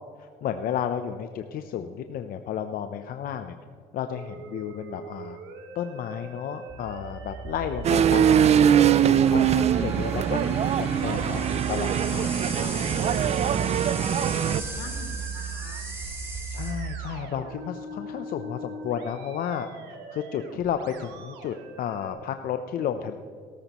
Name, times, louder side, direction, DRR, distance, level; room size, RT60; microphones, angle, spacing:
voice 1, 0.2-3.5 3.9-5.4 5.7-12.7 16.5-19.7 20.1-23.2, left 9 dB, 60° left, 7 dB, 0.6 m, -32 dB
Musical instrument, 4.1-22.1, right 3 dB, 85° right, 1.5 m, -43 dB
sound 1, 6.7-16.7, right 4 dB, 15° right, 3.3 m, -35 dB
sound 2, 7.8-14.6, right 9 dB, 40° right, 0.4 m, -22 dB
voice 2, 12.5-14.3 14.5-15.9, left 6 dB, 85° left, 3 dB, 1.9 m, -46 dB
17.0 x 13.5 x 3.0 m, 2.2 s
cardioid pair, 110°, 17 cm